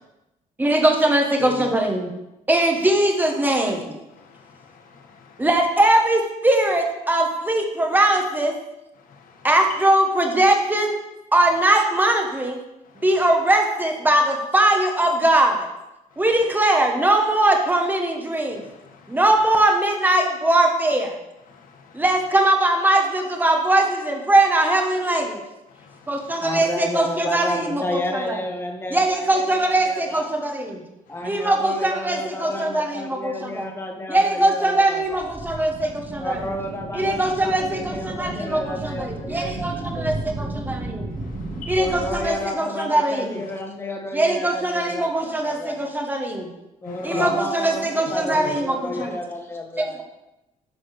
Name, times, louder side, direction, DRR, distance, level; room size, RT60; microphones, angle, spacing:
voice 1, 0.6-2.1 2.5-4.0 5.4-8.6 9.4-11.0 11.3-12.6 13.0-15.7 16.2-18.6 19.1-21.2 21.9-25.4 26.1-28.5 28.9-30.8 31.2-33.7 34.1-36.4 36.9-41.1 41.7-43.4 44.1-46.5 47.0-49.1 49.8-50.0, right 1 dB, 15° right, 2 dB, 1.5 m, -21 dB
voice 2, 1.4-1.7 4.4-4.5 4.7-5.3 9.2-9.5 19.0-19.1 21.5-22.0 25.8-26.0 41.7-41.8 46.9-47.3 48.4-48.5, left 6 dB, 75° left, 4 dB, 1.5 m, -35 dB
voice 3, 26.4-30.2 31.1-35.3 36.2-40.1 41.8-45.1 45.4-45.8 46.8-50.0, left 1 dB, 15° left, 3 dB, 1.4 m, -31 dB
sound 1, 35.0-42.3, right 2 dB, 40° right, 1.8 m, -33 dB
11.0 x 4.2 x 6.7 m, 0.95 s
cardioid pair, 120°, 14 cm